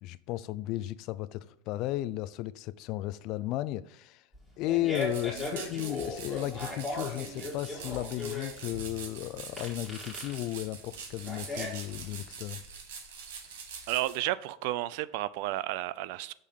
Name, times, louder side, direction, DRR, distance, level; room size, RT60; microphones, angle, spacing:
voice 1, 0.0-4.2 4.6-12.6, left 15 dB, 50° left, 0.3 m, -34 dB
Fart, 4.3-12.3, left 2 dB, ahead, 1.8 m, -38 dB
sound 1, 4.9-14.2, right 6 dB, 85° right, 1.3 m, -44 dB
voice 2, 13.9-16.3, right 16 dB, 65° right, 0.3 m, -32 dB
6.5 x 3.5 x 5.3 m
supercardioid pair, 135°, 0 cm